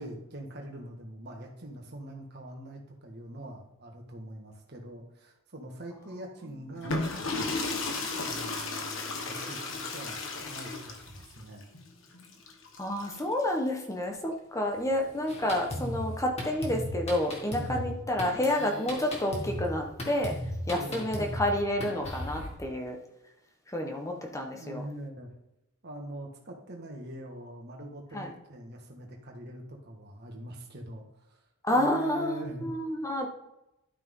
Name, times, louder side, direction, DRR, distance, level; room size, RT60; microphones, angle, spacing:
voice 1, 0.0-7.0 8.1-11.7 17.6-18.0 20.7-21.1 24.5-25.3 25.8-31.4 31.7-32.7, right 1 dB, 50° right, 2 dB, 1.7 m, -43 dB
sound 1, 6.7-13.4 14.7-16.2, left 3 dB, 60° left, 1.4 m, -35 dB
voice 2, 12.8-23.0 23.7-24.8 28.1-28.4 31.6-33.3, left 1 dB, 15° left, 2 dB, 1.1 m, -30 dB
Drum kit, 15.3-22.5, left 1 dB, 30° left, 2.3 m, -37 dB
12.0 x 5.9 x 3.8 m, 0.89 s
head